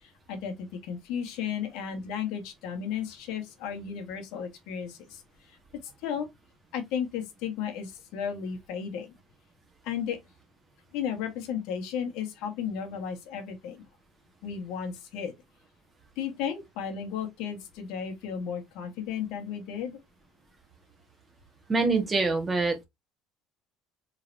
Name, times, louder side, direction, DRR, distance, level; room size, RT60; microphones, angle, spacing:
voice 1, 0.0-5.2 5.5-5.6 6.0-6.3 6.7-9.1 9.8-10.2 10.9-13.8 14.4-15.3 16.2-20.0, left 8 dB, 70° left, 1.5 m, -34 dB
voice 2, 21.7-22.8, right 3 dB, 15° right, 1.5 m, -25 dB
4.4 x 3.8 x 2.7 m
cardioid pair, 150°, 0 cm